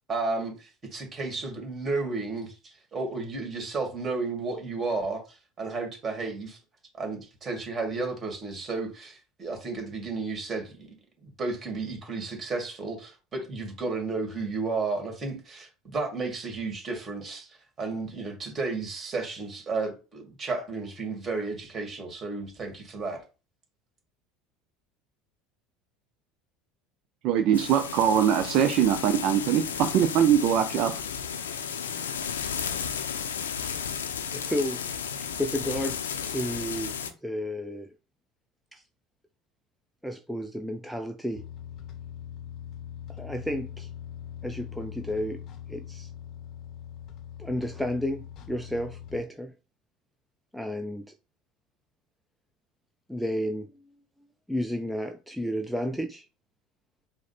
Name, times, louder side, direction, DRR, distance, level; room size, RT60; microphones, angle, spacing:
voice 1, 0.1-6.6 7.0-11.0 11.2-23.2, right 3 dB, 30° right, 2.1 m, -33 dB
voice 2, 27.2-30.9, right 9 dB, 60° right, 0.4 m, -22 dB
sound 1, 27.5-37.1, left 7 dB, 90° left, 0.5 m, -33 dB
voice 3, 34.3-34.9 35.4-37.9 38.7-38.8 40.0-41.4 43.2-43.9 44.4-45.4 45.7-46.1 47.4-49.5 50.5-51.1 53.1-53.8 54.5-56.3, equal, ahead, 0.4 m, -32 dB
sound 2, 41.3-49.2, left 10 dB, 55° left, 0.7 m, -42 dB
4.7 x 2.1 x 4.2 m
hypercardioid pair, 80°, 0 cm